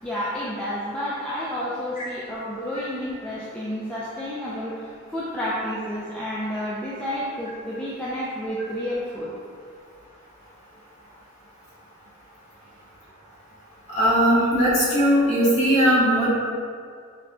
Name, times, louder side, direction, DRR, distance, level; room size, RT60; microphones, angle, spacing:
voice 1, 0.0-9.3, equal, 5° left, -9 dB, 0.3 m, -30 dB
voice 2, 13.9-16.3, equal, 35° left, -12 dB, 1.5 m, -19 dB
5.0 x 2.1 x 2.7 m, 2.2 s
head